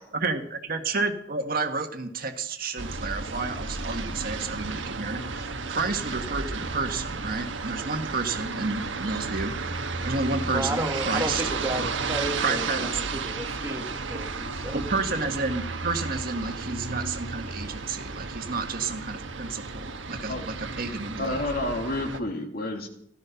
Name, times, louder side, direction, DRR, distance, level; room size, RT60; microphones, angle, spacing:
voice 1, 0.1-11.4 12.4-12.9 14.7-21.4, right 3 dB, 50° right, 6 dB, 1.7 m, -31 dB
sound 1, 2.8-22.2, right 4 dB, 80° right, 1.4 m, -33 dB
voice 2, 10.5-14.8, right 1 dB, 15° right, 4 dB, 1.6 m, -33 dB
voice 3, 21.2-22.9, left 2 dB, 50° left, 3 dB, 2.6 m, -29 dB
16.5 x 13.0 x 5.9 m, 0.70 s
head